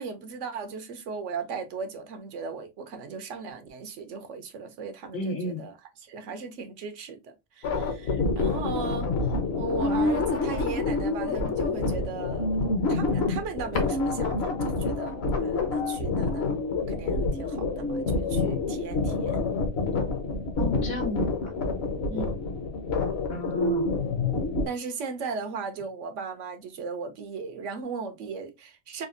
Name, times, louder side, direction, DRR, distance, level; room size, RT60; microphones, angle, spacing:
voice 1, 0.0-5.7 6.0-12.5 12.9-16.5 16.9-19.5 22.1-22.4 24.6-29.1, right 5 dB, 90° right, 1.1 m, -37 dB
voice 2, 5.1-5.6 20.6-21.5 23.3-23.9, left 1 dB, 85° left, 1.6 m, -33 dB
sound 1, 7.6-24.7, left 3 dB, 60° left, 1.1 m, -27 dB
4.0 x 2.4 x 2.5 m
omnidirectional pair, 1.2 m